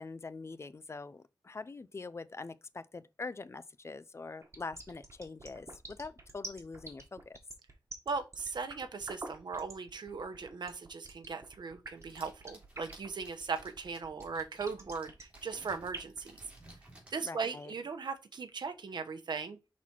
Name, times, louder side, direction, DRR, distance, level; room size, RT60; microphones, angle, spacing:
voice 1, 0.0-7.4 17.2-17.7, left 3 dB, 35° left, 0.4 m, -44 dB
sound 1, 4.4-16.2, right 2 dB, 40° right, 1.6 m, -46 dB
voice 2, 8.1-16.4 17.1-19.6, right 5 dB, 80° right, 0.8 m, -38 dB
sound 2, 11.9-17.2, right 1 dB, 15° right, 2.7 m, -57 dB
5.8 x 4.1 x 4.4 m
wide cardioid pair, 120°, 8 cm